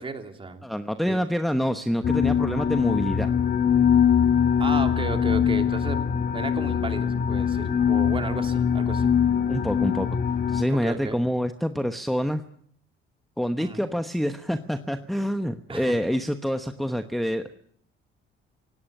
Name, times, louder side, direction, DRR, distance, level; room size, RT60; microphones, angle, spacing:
voice 1, 0.0-0.6 1.1-1.2 4.6-6.0 6.3-9.1 10.7-11.2 13.6-13.8 15.7-16.0, right 3 dB, 25° right, 6 dB, 3.0 m, -33 dB
voice 2, 0.6-3.3 9.5-10.1 10.5-12.4 13.4-17.5, equal, ahead, 8 dB, 1.0 m, -26 dB
sound 1, 2.0-10.6, left 8 dB, 45° left, 1.8 m, -22 dB
28.0 x 17.5 x 6.7 m, 0.63 s
cardioid pair, 115°, 21 cm